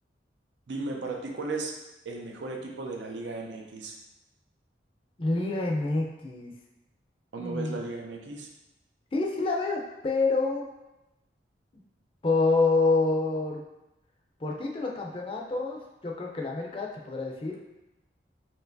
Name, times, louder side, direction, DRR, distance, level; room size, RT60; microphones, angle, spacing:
voice 1, 0.7-1.7 2.0-3.9 7.3-8.5, right 3 dB, 90° right, 0 dB, 0.6 m, -35 dB
voice 2, 5.2-6.5 7.4-7.8 9.1-10.7 12.2-13.6 14.4-17.6, left 3 dB, 30° left, 0 dB, 0.4 m, -27 dB
4.4 x 2.9 x 2.6 m, 0.96 s
head